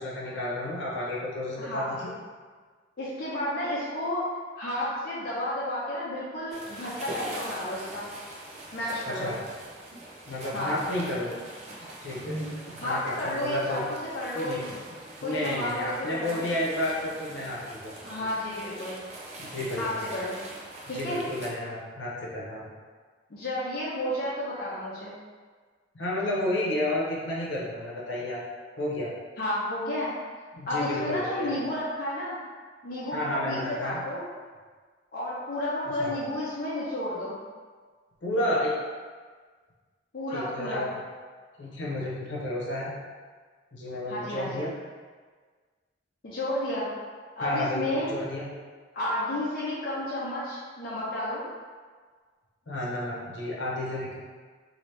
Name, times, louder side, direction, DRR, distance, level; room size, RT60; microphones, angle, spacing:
voice 1, 0.0-2.1 9.1-9.4 10.3-11.4 12.0-13.8 14.3-14.6 15.2-17.9 18.2-18.3 19.4-20.0 20.9-22.6 25.9-28.4 28.8-29.1 30.6-31.6 33.1-34.0 36.0-36.1 38.2-38.7 40.3-40.9 41.6-42.9 43.7-44.7 47.4-48.4 52.7-54.1, left 1 dB, 75° left, -5 dB, 0.8 m, -31 dB
voice 2, 1.6-1.9 3.0-4.2 4.6-8.1 8.7-9.3 10.5-10.7 12.8-14.7 15.2-16.4 18.0-19.0 19.8-20.4 20.9-21.2 23.3-25.1 29.4-30.1 30.7-32.4 32.8-34.3 35.1-37.4 40.1-40.9 44.1-44.6 46.2-46.9 47.4-48.1 48.9-51.4, left 1 dB, 55° left, -8 dB, 0.6 m, -31 dB
sound 1, 6.5-21.5, right 1 dB, 35° right, 0.5 m, -43 dB
2.8 x 2.7 x 3.2 m, 1.5 s
head